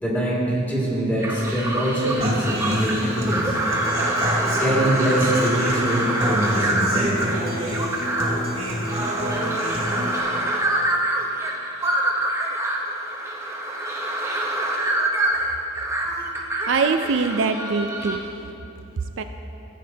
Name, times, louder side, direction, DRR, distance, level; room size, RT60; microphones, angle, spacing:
voice 1, 0.0-3.6 4.6-7.2, right 1 dB, 10° left, -7 dB, 2.2 m, -23 dB
sound 1, 1.2-18.2, right 1 dB, 15° right, 0.9 m, -26 dB
Human voice / Acoustic guitar, 2.2-10.2, equal, 30° right, 1.9 m, -28 dB
voice 2, 16.7-18.2 19.2-19.3, right 4 dB, 65° right, 7 dB, 0.4 m, -22 dB
15.0 x 8.5 x 2.8 m, 3.0 s
head